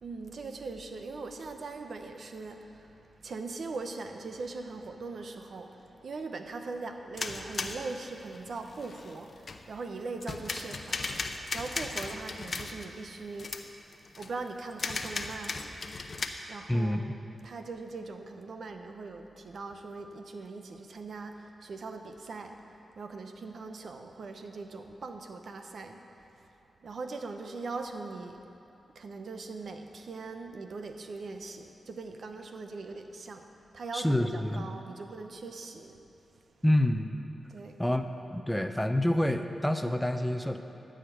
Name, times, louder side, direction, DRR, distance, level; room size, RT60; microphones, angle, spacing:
voice 1, 0.0-13.5 14.2-15.7 16.0-16.2 16.5-17.2 17.4-26.5 26.8-28.4 28.9-33.4 33.7-35.9 37.5-37.8, right 3 dB, 70° right, 5 dB, 0.8 m, -41 dB
sound 1, 7.2-9.8 10.2-12.9 13.4-13.6 13.9-14.3 14.7-16.3, left 3 dB, 55° left, 0.7 m, -36 dB
voice 2, 16.7-17.0 33.9-34.7 36.6-37.1 37.8-40.6, left 1 dB, 5° left, 7 dB, 0.6 m, -27 dB
13.0 x 5.1 x 7.9 m, 2.8 s
cardioid pair, 55°, 0 cm